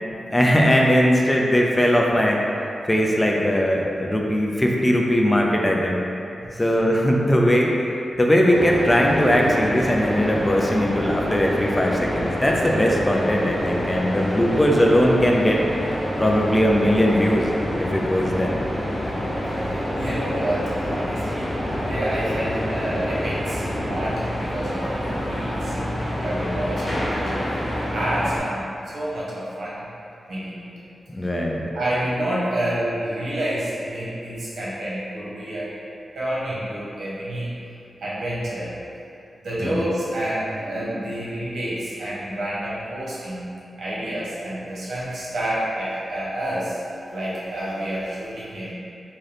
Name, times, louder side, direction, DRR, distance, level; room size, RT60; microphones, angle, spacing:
voice 1, 0.3-2.4 2.9-6.0 6.6-7.8 8.2-15.6 16.2-17.5 17.8-18.6 26.4-26.6 31.1-31.7 39.6-39.8, equal, 15° left, -1 dB, 0.4 m, -19 dB
sound 1, 8.5-28.4, equal, 40° left, 0.9 m, -27 dB
voice 2, 19.5-21.5 21.8-25.7 26.2-28.6 28.9-29.8 30.3-30.7 31.7-35.7 36.1-37.5 38.0-38.7 39.4-43.4 43.8-46.8 47.1-48.7, right 1 dB, 90° right, -8 dB, 1.0 m, -28 dB
3.7 x 2.7 x 3.4 m, 2.6 s
wide cardioid pair, 105°, 0 cm